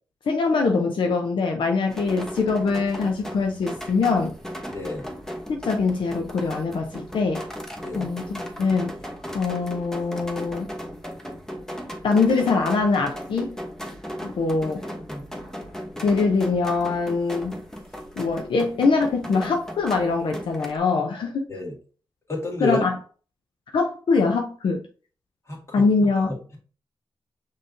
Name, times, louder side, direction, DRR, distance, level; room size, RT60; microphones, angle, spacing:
voice 1, 0.3-4.3 5.5-7.4 7.9-8.9 9.3-10.7 12.0-13.6 14.2-14.8 16.0-17.5 18.2-21.5 22.6-23.0 23.7-24.8 25.7-26.3, left 4 dB, 75° left, 2 dB, 0.6 m, -23 dB
sound 1, 1.9-20.8, equal, 5° left, 0.9 m, -36 dB
voice 2, 4.7-5.1 7.8-8.1 15.1-15.3 21.5-21.7 22.3-22.8 25.5-25.8, left 2 dB, 30° left, 0 dB, 1.8 m, -29 dB
5.5 x 3.3 x 2.6 m, 0.39 s
cardioid pair, 85°, 9 cm